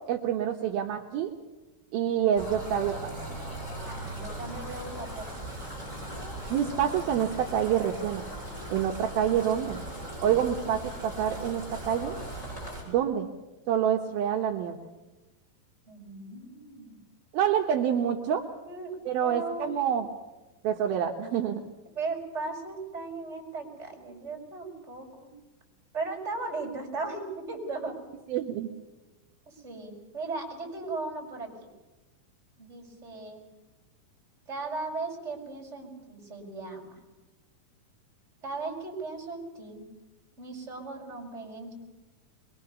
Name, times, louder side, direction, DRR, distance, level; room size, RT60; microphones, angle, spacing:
voice 1, 0.1-1.3 1.9-3.1 6.5-8.3 8.7-9.8 10.2-12.1 12.9-13.3 13.7-14.9 17.3-18.4 19.1-20.1 20.6-21.6 28.3-28.7, right 9 dB, 75° right, 2 dB, 2.9 m, -27 dB
sound 1, 2.4-12.8, right 1 dB, 10° left, 8.1 m, -39 dB
voice 2, 3.9-5.3 15.9-17.0 18.6-19.7 21.9-25.3 25.9-28.0 29.5-31.7 32.6-33.4 34.5-37.0 38.4-39.9 40.4-41.7, right 3 dB, 15° right, -1 dB, 5.1 m, -37 dB
23.0 x 22.5 x 6.9 m, 1.1 s
omnidirectional pair, 4.5 m